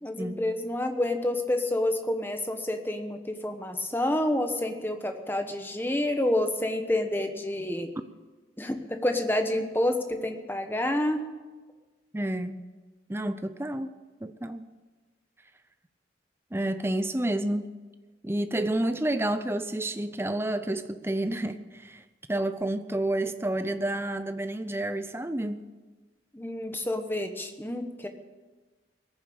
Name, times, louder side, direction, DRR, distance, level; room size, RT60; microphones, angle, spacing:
voice 1, 0.0-7.9 8.6-11.2 26.3-28.1, left 1 dB, 10° left, 1.1 m, -28 dB
voice 2, 12.1-12.6 13.1-13.9 14.2-14.7 16.5-17.7 18.2-22.0 22.3-25.6, right 1 dB, 15° right, 0.5 m, -29 dB
19.5 x 7.3 x 8.6 m
head